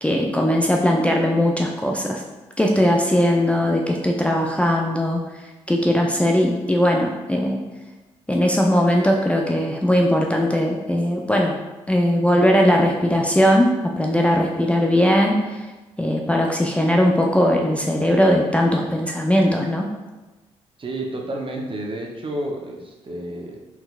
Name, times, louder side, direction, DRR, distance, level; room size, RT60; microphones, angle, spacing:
voice 1, 0.0-2.2 2.6-5.2 5.7-7.6 8.3-11.6 11.9-15.6 16.0-19.9, equal, 10° left, 0 dB, 0.5 m, -19 dB
voice 2, 20.8-23.6, right 1 dB, 35° right, 0 dB, 0.9 m, -30 dB
4.3 x 3.8 x 2.4 m, 1.2 s
hypercardioid pair, 40°, 15 cm